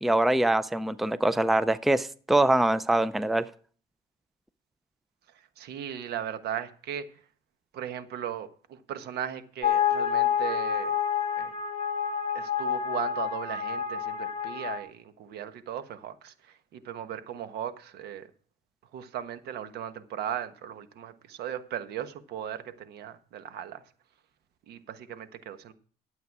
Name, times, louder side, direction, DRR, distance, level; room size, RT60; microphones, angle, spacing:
voice 1, 0.0-3.5, right 1 dB, ahead, 15 dB, 0.5 m, -24 dB
voice 2, 5.3-7.0 7.7-11.0 11.4-11.5 12.3-18.3 18.9-23.8 24.7-25.7, right 10 dB, 75° right, 10 dB, 1.2 m, -37 dB
sound 1, 9.6-14.8, left 8 dB, 40° left, 1.1 m, -28 dB
12.0 x 8.0 x 4.7 m, 0.43 s
cardioid pair, 110°, 17 cm